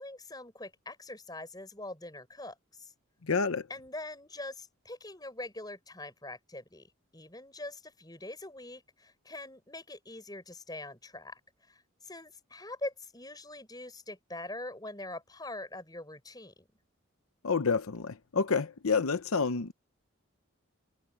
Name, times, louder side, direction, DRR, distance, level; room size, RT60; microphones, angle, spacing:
voice 1, 0.0-2.9 3.7-16.7, left 2 dB, 20° left, 5.7 m, -43 dB
voice 2, 3.3-3.7 17.4-19.7, left 5 dB, 85° left, 0.8 m, -28 dB
head